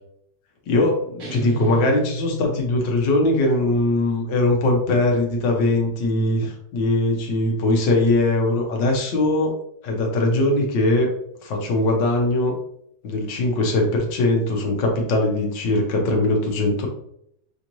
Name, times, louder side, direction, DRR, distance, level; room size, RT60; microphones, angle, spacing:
voice 1, 0.7-9.5 9.8-11.1 11.4-12.5 13.0-16.9, left 2 dB, 90° left, 1 dB, 1.6 m, -21 dB
sound 1, 1.2-3.8, right 1 dB, 60° right, 1.3 m, -32 dB
5.7 x 3.0 x 2.6 m, 0.73 s
omnidirectional pair, 1.9 m